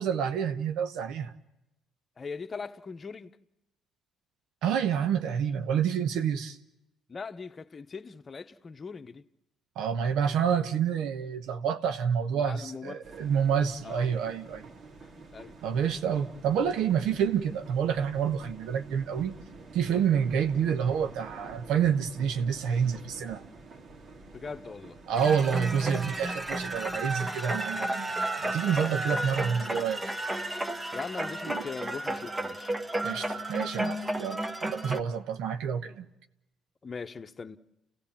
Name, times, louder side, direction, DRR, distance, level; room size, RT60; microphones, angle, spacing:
voice 1, 0.0-1.3 4.6-6.6 9.8-14.6 15.6-19.3 19.7-23.4 25.1-30.0 31.5-31.6 33.0-36.1, right 7 dB, 75° right, 1.0 m, -28 dB
voice 2, 2.2-3.3 7.1-9.2 12.3-13.2 13.8-14.1 15.3-15.6 24.3-25.0 30.9-32.7 36.8-37.6, left 5 dB, 35° left, 1.0 m, -40 dB
sound 1, 13.0-27.0, right 3 dB, 55° right, 2.2 m, -49 dB
sound 2, 25.2-35.0, right 1 dB, 20° right, 1.5 m, -32 dB
29.5 x 16.5 x 7.3 m
supercardioid pair, 70°, 0 cm